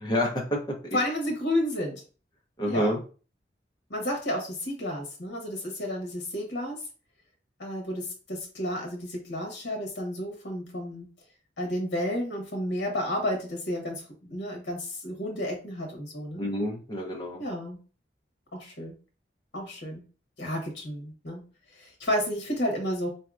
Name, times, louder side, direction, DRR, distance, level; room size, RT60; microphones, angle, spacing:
voice 1, 0.0-1.0 2.6-3.0 16.4-17.4, equal, 25° left, 0 dB, 0.7 m, -28 dB
voice 2, 0.9-2.0 2.7-2.9 3.9-6.8 7.6-11.1 11.6-16.4 17.4-17.8 18.5-18.9 19.5-20.0 20.4-21.4 21.8-23.1, left 1 dB, 80° left, 1 dB, 1.0 m, -31 dB
4.3 x 2.7 x 2.4 m, 0.37 s
head